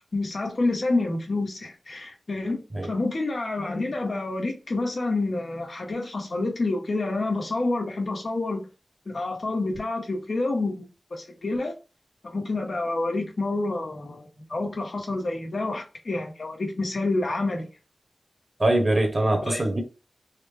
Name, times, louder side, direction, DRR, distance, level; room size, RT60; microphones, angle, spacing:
voice 1, 0.1-8.7 9.0-11.7 12.2-17.7 19.4-19.8, left 2 dB, 70° left, 1.3 m, -28 dB
voice 2, 18.6-19.8, right 1 dB, 40° right, 1.2 m, -22 dB
4.0 x 2.2 x 3.4 m
wide cardioid pair, 60°, 0 cm